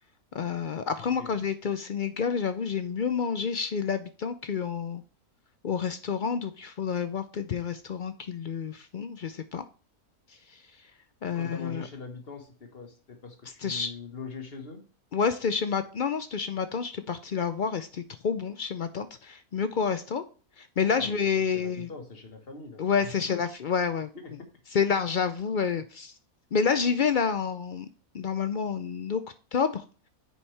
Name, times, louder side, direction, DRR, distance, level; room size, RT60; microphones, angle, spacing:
voice 1, 0.3-5.0 5.6-9.6 11.2-11.9 13.6-13.9 15.1-20.2 20.6-21.9 22.8-24.1 24.7-26.1 26.5-27.9 28.1-29.2 29.5-29.8, left 6 dB, 65° left, 11 dB, 0.4 m, -29 dB
voice 2, 1.0-1.4 11.3-14.9 21.0-23.4 24.1-24.5, left 4 dB, 45° left, 5 dB, 1.7 m, -42 dB
9.2 x 7.1 x 3.3 m, 0.36 s
omnidirectional pair, 1.5 m